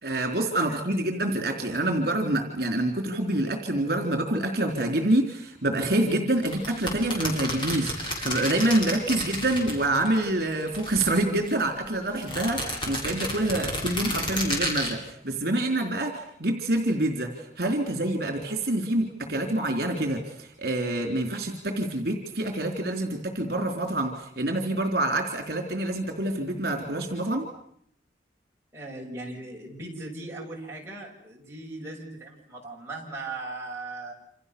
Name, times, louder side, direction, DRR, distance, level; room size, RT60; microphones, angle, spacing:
voice 1, 0.0-27.4, right 1 dB, 55° right, 4 dB, 4.1 m, -27 dB
sound 1, 6.4-10.2 10.5-11.6 12.2-14.9, equal, 25° left, 7.9 m, -31 dB
voice 2, 28.7-34.1, right 2 dB, 15° right, -3 dB, 7.3 m, -38 dB
29.0 x 28.0 x 7.1 m, 0.69 s
head